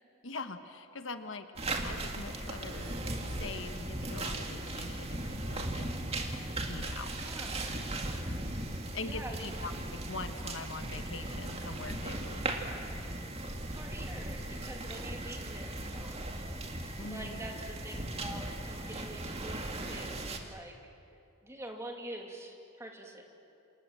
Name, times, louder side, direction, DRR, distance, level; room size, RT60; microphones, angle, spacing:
voice 1, 0.2-3.0 3.2-6.3 6.7-7.2 8.9-12.5 17.0-17.4, left 3 dB, 65° left, 8 dB, 1.4 m, -43 dB
sound 1, 1.6-20.4, right 1 dB, 30° right, 2.2 m, -37 dB
voice 2, 7.1-7.7 9.0-9.7 13.7-16.3 17.1-20.8 21.4-23.2, right 1 dB, 15° right, 1 dB, 2.9 m, -46 dB
28.5 x 27.5 x 7.6 m, 2.6 s
head